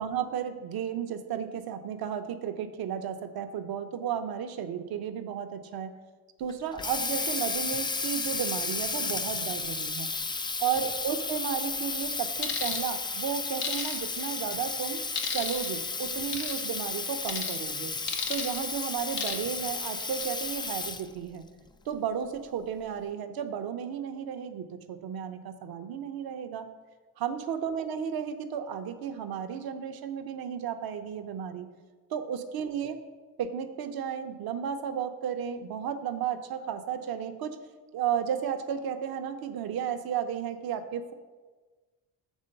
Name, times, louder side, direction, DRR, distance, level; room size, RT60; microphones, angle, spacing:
voice 1, 0.0-5.9 6.4-10.1 10.6-15.0 15.3-17.9 18.3-21.4 21.9-26.7 27.2-31.7 32.1-33.0 33.4-37.6 37.9-41.1, right 8 dB, 55° right, 8 dB, 0.8 m, -33 dB
Water tap faucet, 6.5-21.2, left 3 dB, 10° left, 0.3 m, -33 dB
sound 1, 12.4-12.8 13.6-14.3 15.2-15.7 16.3-16.6 17.3-17.5 18.1-18.6 19.2-19.6 20.0-20.2, left 7 dB, 85° left, 1.0 m, -33 dB
7.3 x 3.8 x 6.5 m, 1.3 s
hypercardioid pair, 60°, 43 cm